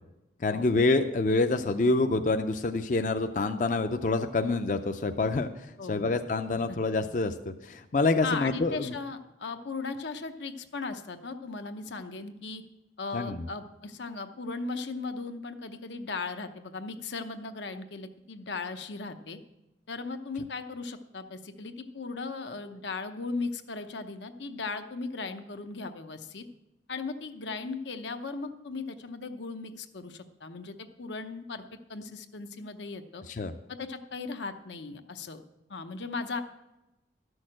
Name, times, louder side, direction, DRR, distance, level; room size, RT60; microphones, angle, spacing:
voice 1, 0.4-5.5 5.9-7.3 7.6-8.9 13.1-13.4 33.3-33.5, left 3 dB, 45° left, 7 dB, 0.4 m, -26 dB
voice 2, 5.8-6.2 6.7-6.8 8.2-12.6 13.0-19.4 19.9-26.4 26.9-31.6 31.9-33.2 33.7-35.4 35.7-36.4, left 4 dB, 85° left, 7 dB, 0.8 m, -37 dB
12.5 x 6.4 x 7.5 m, 0.95 s
head